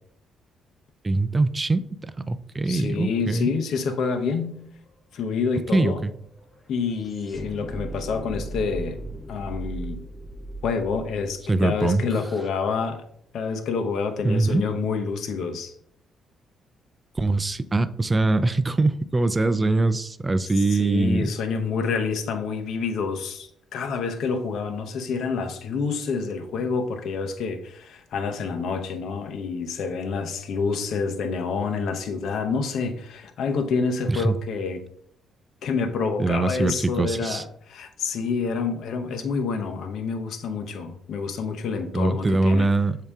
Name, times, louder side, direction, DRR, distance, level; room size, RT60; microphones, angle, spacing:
voice 1, 1.0-3.5 5.7-6.1 11.5-12.0 14.2-14.6 17.2-21.3 34.1-34.3 36.2-37.4 41.9-43.0, right 2 dB, 20° right, 0.4 m, -23 dB
voice 2, 2.7-4.6 5.1-6.0 6.7-9.0 9.3-10.0 10.6-13.0 13.3-15.7 20.7-34.9 35.6-42.7, left 5 dB, 70° left, 0.8 m, -28 dB
sound 1, 4.3-12.5, right 2 dB, 20° left, 1.7 m, -38 dB
7.0 x 2.8 x 4.7 m
cardioid pair, 90°, 0 cm